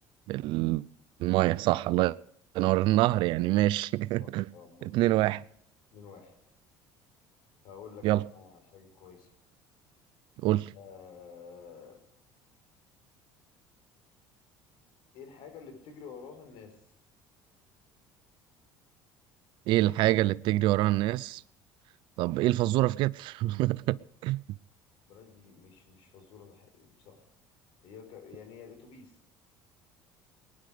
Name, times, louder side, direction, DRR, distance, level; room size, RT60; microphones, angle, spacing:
voice 1, 0.3-0.8 1.2-2.2 2.5-4.5 4.8-5.4 8.0-8.2 10.4-10.7 19.7-21.4 22.2-24.4, right 17 dB, 70° right, 0.5 m, -26 dB
voice 2, 2.6-3.0 4.2-5.0 5.9-6.3 7.6-9.3 10.7-12.0 15.1-16.8 25.0-27.2 27.8-29.2, left 6 dB, 70° left, 4.6 m, -50 dB
19.5 x 11.0 x 5.0 m
supercardioid pair, 95°, 9 cm